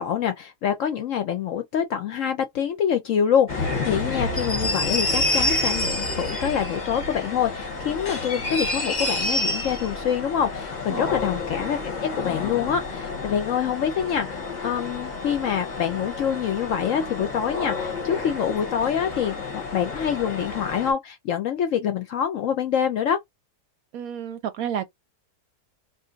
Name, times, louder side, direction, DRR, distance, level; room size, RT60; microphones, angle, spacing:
voice 1, 0.0-23.2, left 8 dB, 65° left, 0.8 m, -26 dB
sound 1, 3.5-20.9, left 2 dB, 35° left, 0.7 m, -29 dB
voice 2, 23.9-25.0, right 9 dB, 70° right, 0.9 m, -31 dB
2.6 x 2.4 x 3.8 m
omnidirectional pair, 1.8 m